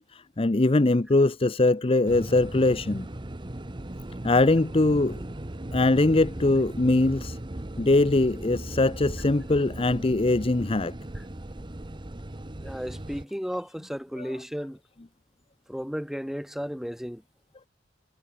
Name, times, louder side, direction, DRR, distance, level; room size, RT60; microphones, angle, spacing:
voice 1, 0.1-3.1 4.2-5.2 5.7-7.4 7.8-10.9 14.2-14.3, left 2 dB, 30° left, 0.7 m, -22 dB
sound 1, 2.0-13.2, right 1 dB, 25° right, 1.0 m, -38 dB
voice 2, 12.6-14.8 15.7-17.2, equal, ahead, 6.1 m, -34 dB
head